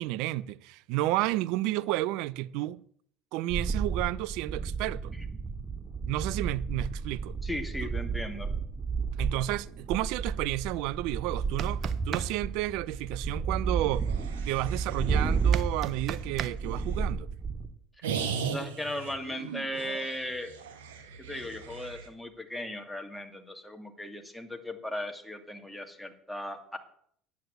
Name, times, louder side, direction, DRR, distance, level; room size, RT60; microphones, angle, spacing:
voice 1, 0.0-2.8 3.3-5.1 6.1-7.3 7.8-7.9 9.2-14.1 14.5-17.3, right 16 dB, 70° right, 0.5 m, -31 dB
sound 1, 3.5-17.7, right 5 dB, 20° right, 2.2 m, -32 dB
voice 2, 7.4-8.5 18.0-18.1 18.5-20.5 21.2-26.8, left 1 dB, 5° left, 2.4 m, -37 dB
sound 2, 11.4-12.3 15.5-16.5, right 9 dB, 50° right, 0.9 m, -34 dB
sound 3, 13.9-17.1 18.0-22.1, right 6 dB, 85° right, 1.5 m, -39 dB
9.5 x 9.4 x 8.0 m
hypercardioid pair, 75°, 0 cm